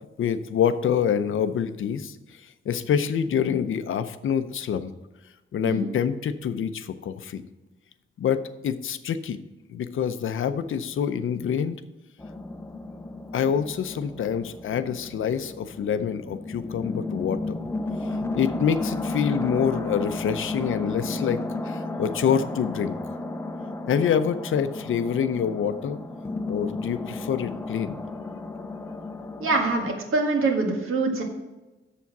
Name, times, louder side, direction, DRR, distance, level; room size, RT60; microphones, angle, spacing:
voice 1, 0.2-2.2 2.4-4.9 5.5-7.4 8.2-9.4 9.7-11.8 13.3-17.6 18.3-23.0 23.9-26.0 26.5-28.0, left 8 dB, 70° left, 11 dB, 0.6 m, -26 dB
sound 1, 12.2-30.0, left 2 dB, 10° left, 0.5 m, -33 dB
voice 2, 29.4-31.2, right 3 dB, 80° right, 2 dB, 1.8 m, -24 dB
7.1 x 7.0 x 5.9 m, 1.1 s
wide cardioid pair, 150°, 21 cm